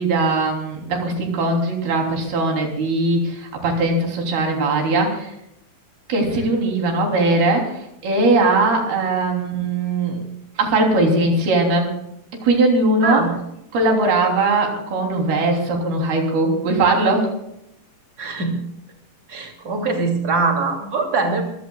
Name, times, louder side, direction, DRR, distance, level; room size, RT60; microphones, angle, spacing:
voice 1, 0.0-5.3 6.1-10.3 10.6-11.9 12.4-13.2 13.7-17.3, right 2 dB, 80° right, 1 dB, 5.3 m, -20 dB
voice 2, 13.0-13.3 18.2-18.6 19.3-21.4, right 3 dB, 25° right, 2 dB, 3.0 m, -22 dB
25.0 x 16.0 x 2.4 m, 0.80 s
omnidirectional pair, 4.3 m